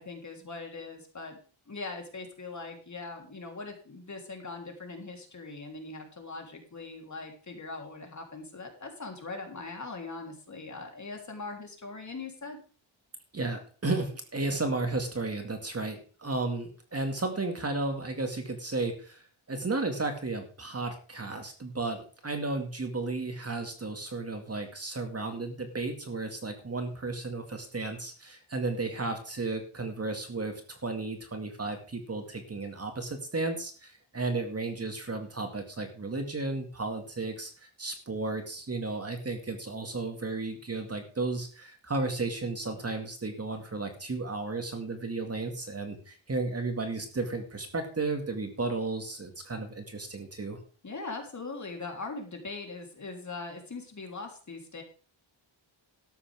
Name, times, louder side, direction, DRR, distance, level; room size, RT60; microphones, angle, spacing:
voice 1, 0.0-1.4 1.7-12.6 50.8-54.8, left 3 dB, 35° left, 2 dB, 3.5 m, -41 dB
voice 2, 13.3-19.2 19.5-50.6, right 3 dB, 30° right, 5 dB, 2.1 m, -33 dB
13.0 x 11.5 x 3.6 m, 0.39 s
wide cardioid pair, 125°, 48 cm